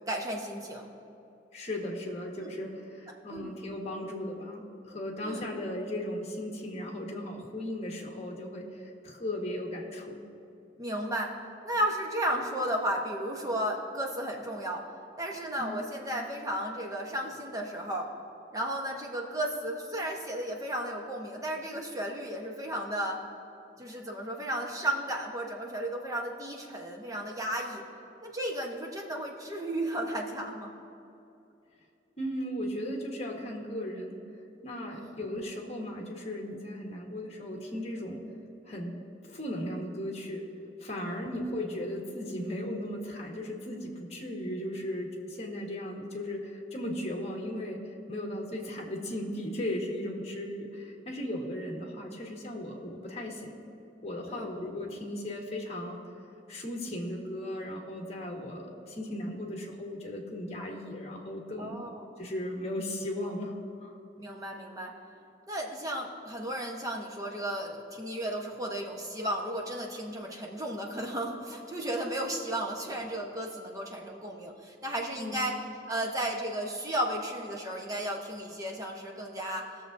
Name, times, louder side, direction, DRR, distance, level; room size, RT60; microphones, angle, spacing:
voice 1, 0.1-0.9 2.4-2.5 3.3-3.5 5.2-5.4 10.8-11.3 11.6-14.9 15.2-18.1 18.5-23.2 23.8-27.8 28.2-30.7 34.9-35.1 41.0-41.1 54.3-54.5 61.6-62.0 64.2-64.9 65.5-75.6 75.9-79.7, right 1 dB, 20° right, 0 dB, 0.9 m, -34 dB
voice 2, 1.5-10.2 15.6-15.9 32.2-34.2 34.6-38.2 38.7-39.0 39.3-40.4 40.8-53.6 54.0-56.0 56.5-61.8 62.2-63.6 63.8-63.9 75.2-75.5, left 1 dB, 35° left, 0 dB, 1.4 m, -36 dB
19.5 x 6.8 x 2.6 m, 2.7 s
head